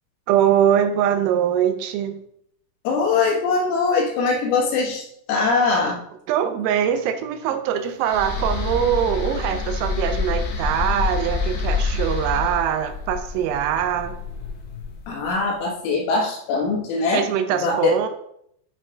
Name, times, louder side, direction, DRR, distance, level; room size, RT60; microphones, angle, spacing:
voice 1, 0.3-2.2 6.3-14.2 17.1-18.1, right 9 dB, 85° right, 8 dB, 3.4 m, -22 dB
voice 2, 2.9-6.0 15.1-17.3 17.6-18.0, left 4 dB, 85° left, -2 dB, 4.2 m, -22 dB
sound 1, 8.0-15.2, left 4 dB, 70° left, 3.2 m, -27 dB
9.9 x 5.6 x 2.4 m, 0.70 s
omnidirectional pair, 5.8 m